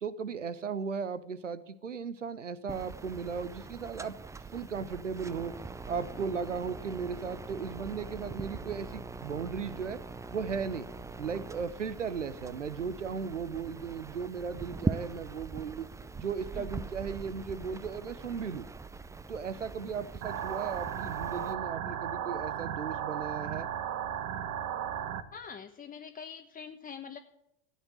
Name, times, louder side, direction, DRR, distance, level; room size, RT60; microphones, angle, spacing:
voice 1, 0.0-4.2 4.5-5.5 5.9-10.0 10.3-10.9 11.2-15.9 16.2-18.7 19.3-23.7, right 6 dB, 90° right, 16 dB, 0.9 m, -36 dB
sound 1, 2.7-21.5, right 3 dB, 10° right, 0.6 m, -42 dB
sound 2, 20.2-25.2, right 9 dB, 50° right, 1.4 m, -35 dB
voice 2, 25.3-27.2, left 6 dB, 25° left, 4 dB, 1.1 m, -44 dB
14.5 x 8.4 x 8.7 m, 0.80 s
figure-of-eight pair, 80°, 36 cm